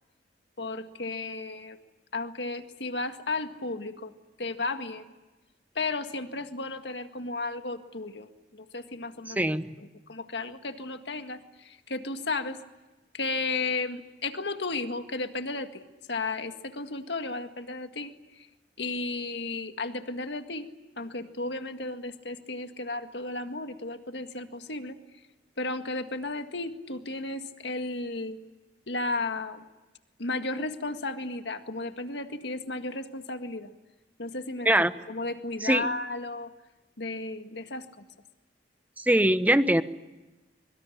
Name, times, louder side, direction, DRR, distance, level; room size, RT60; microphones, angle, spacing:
voice 1, 0.6-1.8 2.1-4.1 4.4-5.1 5.8-9.5 9.8-12.6 13.1-15.8 16.1-18.5 18.8-20.7 21.0-25.0 25.6-28.4 28.9-29.6 30.2-33.7 34.2-34.7 35.1-36.5 37.0-38.0, left 3 dB, 75° left, 7 dB, 1.9 m, -34 dB
voice 2, 9.3-9.7 34.6-34.9 35.6-35.9 39.0-39.8, right 1 dB, 10° right, 11 dB, 1.0 m, -22 dB
24.5 x 24.0 x 10.0 m, 1.1 s
head